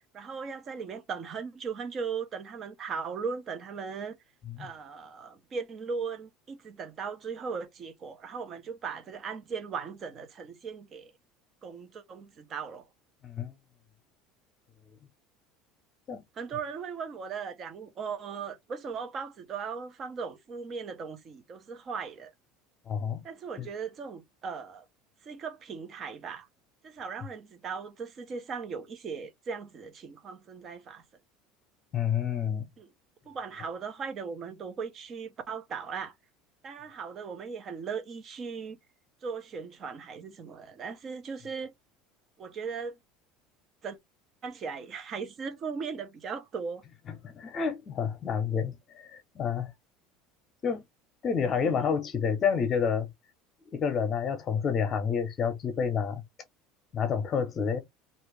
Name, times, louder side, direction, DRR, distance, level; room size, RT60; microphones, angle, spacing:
voice 1, 0.1-4.2 4.6-11.1 11.6-12.8 16.4-22.3 23.2-24.8 25.2-26.5 26.8-31.0 32.8-32.9 33.3-36.1 36.6-38.8 39.2-41.7 42.4-43.0 43.8-44.0 44.4-46.8 51.6-51.9, right 5 dB, 35° right, 0.9 m, -38 dB
voice 2, 13.2-13.5 16.1-16.2 22.9-23.2 23.6-23.7 31.9-32.7 47.1-49.7 50.6-50.8 51.2-53.1 53.7-56.2 56.9-57.8, left 7 dB, 30° left, 1.0 m, -29 dB
2.9 x 2.6 x 3.4 m
cardioid pair, 145°, 0 cm